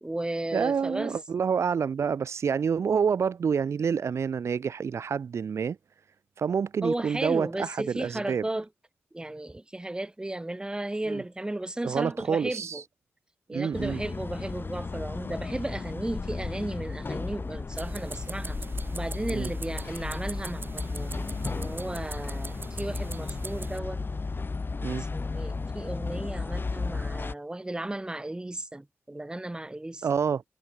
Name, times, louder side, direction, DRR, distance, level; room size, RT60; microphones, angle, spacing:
voice 1, 0.0-1.2 6.8-8.7 9.1-12.8 13.5-18.6 18.9-21.2 21.5-24.0 25.0-30.0, right 1 dB, 20° right, 1.2 m, -34 dB
voice 2, 0.5-5.8 6.4-8.4 11.1-11.2 11.8-12.8 13.5-14.0 19.3-19.5 24.8-25.0 30.0-30.4, right 6 dB, 80° right, 0.8 m, -28 dB
sound 1, 13.7-27.3, left 4 dB, 50° left, 2.9 m, -34 dB
sound 2, 17.7-23.8, right 3 dB, 50° right, 6.7 m, -41 dB
cardioid pair, 60°, 5 cm